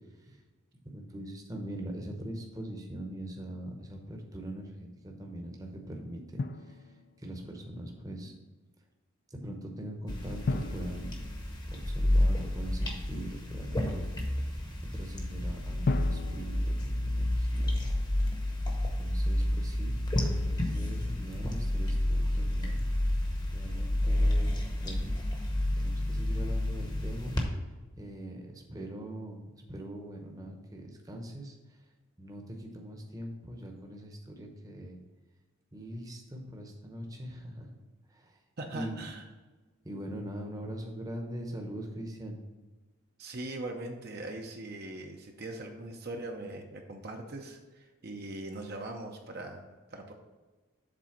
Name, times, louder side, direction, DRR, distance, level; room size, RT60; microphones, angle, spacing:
voice 1, 0.8-6.8 7.2-8.3 9.3-11.2 11.7-14.1 14.9-17.7 19.0-20.0 20.3-22.8 23.5-25.1 25.8-27.4 28.0-31.6 32.2-35.0 35.7-37.7 38.1-38.4 38.7-39.0 39.8-42.4, right 1 dB, 15° right, 2 dB, 0.8 m, -42 dB
Drum, 6.4-7.5 10.5-12.3 15.8-17.8, left 3 dB, 45° left, 0.3 m, -37 dB
sound 1, 10.1-27.4, left 1 dB, 20° left, 0.9 m, -30 dB
voice 2, 38.6-39.2 43.2-49.6 49.9-50.1, right 2 dB, 45° right, 2 dB, 0.6 m, -41 dB
7.5 x 3.9 x 5.8 m, 1.2 s
head